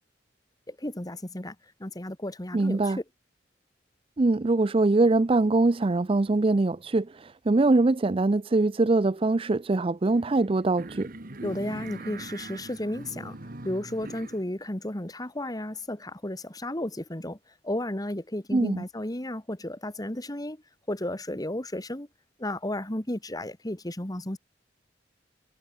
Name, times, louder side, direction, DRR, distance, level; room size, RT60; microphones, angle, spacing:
voice 1, 0.7-1.6 1.8-3.0 11.4-13.4 13.6-17.4 17.6-20.6 20.9-22.1 22.4-24.4, left 1 dB, 20° left, 1.9 m, -33 dB
voice 2, 2.5-3.0 4.2-11.1 18.5-18.8, right 2 dB, 30° right, 0.5 m, -23 dB
sound 1, 10.1-14.4, right 2 dB, 50° right, 1.8 m, -42 dB
head